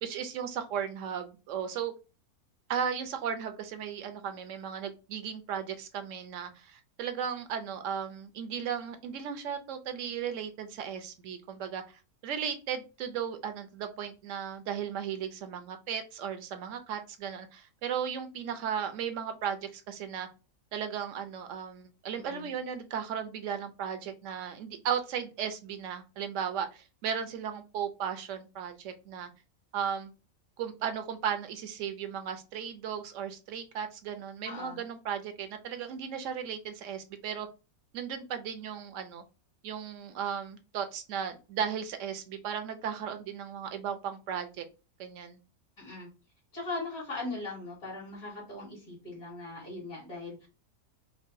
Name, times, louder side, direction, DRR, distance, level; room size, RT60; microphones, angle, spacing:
voice 1, 0.0-1.9 2.7-11.8 12.2-20.3 20.7-29.3 29.7-30.1 30.6-37.5 37.9-39.2 39.6-44.6 45.0-45.4, right 8 dB, 70° right, 7 dB, 0.8 m, -36 dB
voice 2, 22.1-22.5 34.4-34.8 45.8-46.1 46.5-50.5, left 3 dB, 70° left, -7 dB, 2.4 m, -39 dB
4.6 x 2.2 x 2.5 m, 0.31 s
omnidirectional pair, 1.5 m